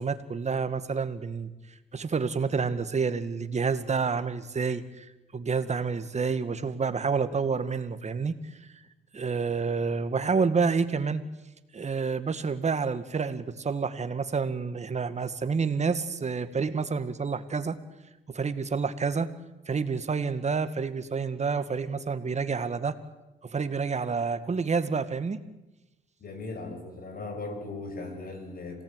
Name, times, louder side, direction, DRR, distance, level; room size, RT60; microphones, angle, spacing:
voice 1, 0.0-1.5 1.9-5.1 5.3-8.4 9.1-11.2 11.7-17.8 18.3-19.3 19.7-23.0 23.4-25.4, right 5 dB, 35° right, 11 dB, 2.0 m, -28 dB
voice 2, 26.2-28.8, left 3 dB, 45° left, 6 dB, 6.7 m, -38 dB
26.5 x 18.0 x 9.2 m, 1.0 s
cardioid pair, 90°, 20 cm